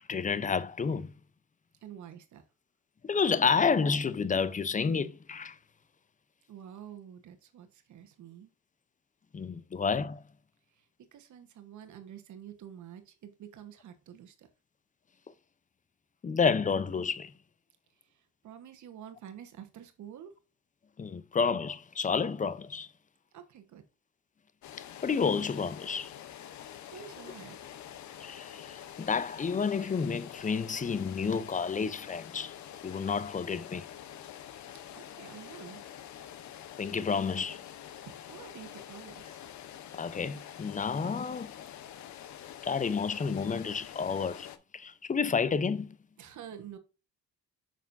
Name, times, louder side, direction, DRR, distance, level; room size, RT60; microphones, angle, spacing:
voice 1, 0.1-1.1 3.0-5.6 9.3-10.2 16.2-17.3 21.0-22.9 25.0-26.1 28.2-32.5 32.8-33.9 36.8-37.6 39.9-41.5 42.6-44.5 44.7-46.0, left 5 dB, 25° left, 0.6 m, -30 dB
voice 2, 1.8-2.4 6.5-8.5 10.7-14.5 18.0-20.3 23.3-23.8 26.9-27.6 34.9-35.8 38.1-39.4 46.2-46.8, right 9 dB, 70° right, 1.3 m, -48 dB
sound 1, 24.6-44.6, left 10 dB, 70° left, 0.8 m, -46 dB
6.9 x 6.0 x 2.6 m
cardioid pair, 90°, 30 cm